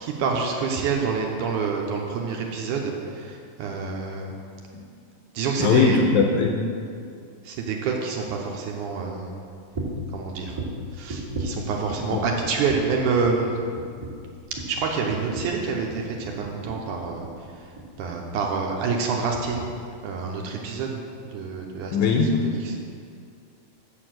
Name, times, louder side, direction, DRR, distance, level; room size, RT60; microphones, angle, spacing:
voice 1, 0.0-4.4 5.3-6.0 7.5-9.4 10.1-10.6 10.9-13.6 14.5-17.3 18.0-19.6 20.0-21.0 21.3-22.2 22.5-22.8, right 5 dB, 75° right, 0 dB, 2.1 m, -27 dB
voice 2, 5.6-6.6 12.1-12.2 21.9-22.3, left 5 dB, 75° left, 1 dB, 1.9 m, -19 dB
sound 1, 9.7-10.1 10.5-12.2 12.4-13.0 13.2-13.5 13.8-16.1 16.4-16.9 17.2-17.4 17.8-17.9, right 1 dB, 35° right, 1.7 m, -35 dB
7.2 x 6.7 x 7.7 m, 2.3 s
omnidirectional pair, 4.0 m